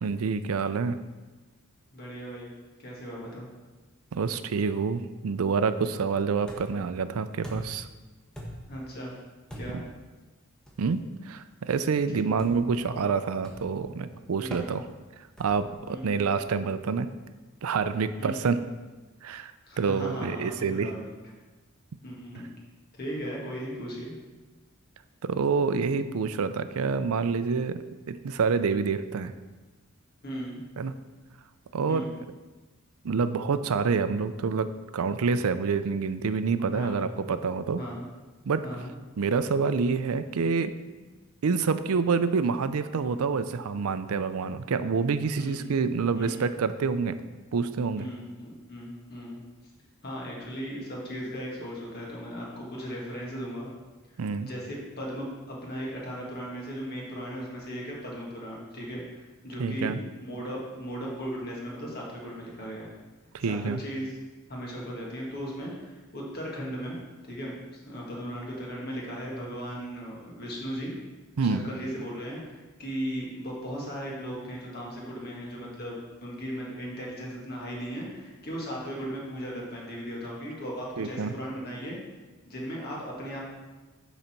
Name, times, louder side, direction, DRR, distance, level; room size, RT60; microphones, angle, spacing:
voice 1, 0.0-1.0 4.1-7.9 10.8-14.8 15.4-17.1 17.6-18.6 19.2-19.5 19.8-20.9 25.2-27.8 28.1-29.3 30.8-30.9 31.7-32.0 33.0-37.8 38.5-38.7 39.2-40.7 41.4-47.2 47.5-48.0 54.2-54.5 59.6-60.0 63.3-63.8 71.4-71.7 81.0-81.3, right 5 dB, 75° right, 12 dB, 0.4 m, -27 dB
voice 2, 1.9-2.5 2.8-3.5 8.7-9.1 9.6-9.8 14.4-14.7 15.9-16.2 18.2-18.4 19.7-21.1 22.0-22.5 23.0-24.1 30.2-30.6 31.9-32.1 36.7-37.0 37.8-38.0 38.6-39.0 41.0-41.1 45.4-45.6 46.1-46.4 48.0-49.4 50.0-53.7 54.1-62.9 63.4-64.1 64.5-67.0 67.2-70.9 71.4-82.0 82.4-83.4, equal, 45° left, -3 dB, 2.0 m, -37 dB
sound 1, 6.5-6.9 7.4-7.9 8.3-8.8 9.5-9.9 10.7-10.9 12.4-12.7 13.4-13.8 14.5-14.7 15.4-15.7, equal, 5° left, 1.2 m, -41 dB
11.0 x 4.0 x 4.4 m, 1.2 s
head